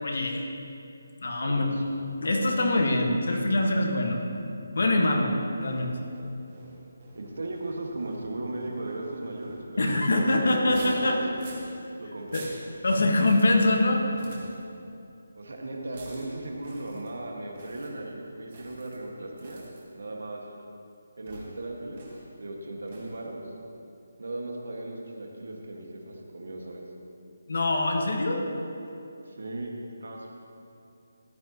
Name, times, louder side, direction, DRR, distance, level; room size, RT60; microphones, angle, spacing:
voice 1, 0.0-0.5 1.2-1.7 2.2-4.2 4.7-5.3 5.6-5.9 9.8-11.2 12.3-12.4 12.8-14.0 27.5-28.4, left 2 dB, 60° left, 2 dB, 1.5 m, -24 dB
voice 2, 1.4-1.8 7.2-10.0 10.3-11.4 12.0-12.5 15.4-20.4 21.2-22.0 22.4-23.4 24.2-26.8 29.3-29.7 30.0-30.4, right 2 dB, 75° right, 0 dB, 1.8 m, -37 dB
sound 1, 5.5-10.0 10.5-11.7 12.2-12.6 13.2-13.7 14.0-14.6 15.9-16.3 16.6-17.1 17.5-17.9 18.5-19.0 19.4-19.8 21.3-21.6 21.9-22.3 22.9-23.2, right 2 dB, 25° right, 1.6 m, -48 dB
14.5 x 11.5 x 3.0 m, 2.7 s
hypercardioid pair, 175°, 0 cm